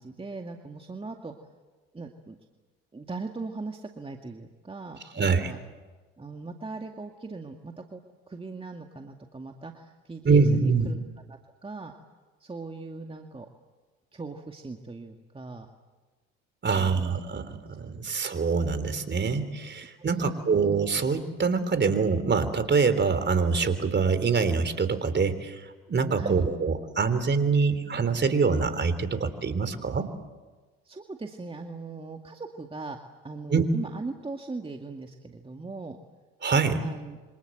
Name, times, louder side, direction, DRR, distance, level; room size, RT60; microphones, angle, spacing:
voice 1, 0.0-1.3 1.9-2.4 2.9-5.6 6.2-8.0 8.3-11.0 11.3-11.9 12.4-13.5 14.1-15.7 16.7-17.0 18.0-18.1 20.0-20.7 26.2-26.5 30.9-33.0 33.2-36.0 36.8-37.2, right 3 dB, 20° right, 3 dB, 2.2 m, -39 dB
voice 2, 5.1-5.5 10.2-10.9 16.6-30.1 33.5-33.6 36.4-36.8, right 5 dB, 35° right, 12 dB, 3.7 m, -25 dB
28.0 x 26.0 x 7.9 m, 1.3 s
hypercardioid pair, 65°, 30 cm